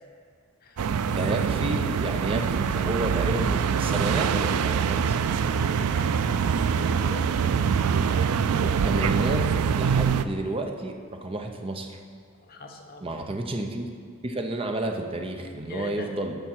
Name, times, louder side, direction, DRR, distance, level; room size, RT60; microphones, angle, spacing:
sound 1, 0.8-10.2, right 6 dB, 85° right, 0.4 m, -24 dB
voice 1, 1.1-5.0 8.6-9.5 9.7-12.0 13.0-13.9 14.2-16.4, right 2 dB, 25° right, 4 dB, 0.6 m, -31 dB
voice 2, 5.3-7.4 8.4-8.6 12.5-13.4 15.7-16.1, left 2 dB, 40° left, 3 dB, 0.9 m, -43 dB
13.0 x 5.2 x 4.6 m, 2.2 s
head